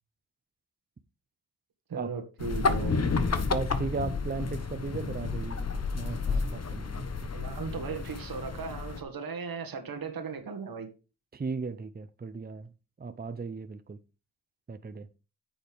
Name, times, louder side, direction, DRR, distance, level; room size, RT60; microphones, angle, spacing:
voice 1, 1.9-3.0 6.3-6.4 7.3-10.9, right 5 dB, 85° right, 1.9 m, -37 dB
sound 1, 2.4-9.0, left 4 dB, 45° left, 1.2 m, -31 dB
voice 2, 3.5-7.3 11.3-12.7 13.0-14.0 14.7-15.1, right 4 dB, 25° right, 0.7 m, -36 dB
9.1 x 7.2 x 3.5 m
cardioid pair, 75°, 34 cm